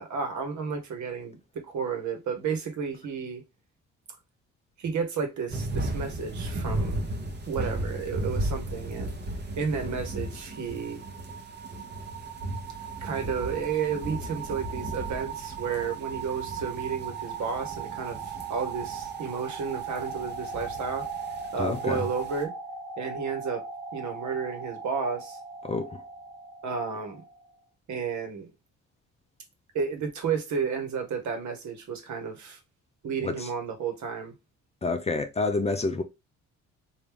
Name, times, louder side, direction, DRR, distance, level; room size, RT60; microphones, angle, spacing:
voice 1, 0.0-1.4 1.6-3.4 4.8-7.1 7.5-9.2 9.6-11.0 13.0-21.0 21.5-22.5 23.0-23.6 23.9-25.4 26.6-27.2 27.9-28.5 29.7-32.6 33.0-34.3, right 6 dB, 70° right, 1.2 m, -32 dB
sound 1, 5.5-22.4, right 1 dB, 35° right, 0.9 m, -36 dB
sound 2, 9.6-27.5, right 6 dB, 85° right, 0.9 m, -39 dB
voice 2, 21.6-22.0 25.6-26.0 33.2-33.5 34.8-36.0, left 3 dB, 20° left, 0.5 m, -28 dB
3.4 x 2.6 x 3.4 m
cardioid pair, 90°, 30 cm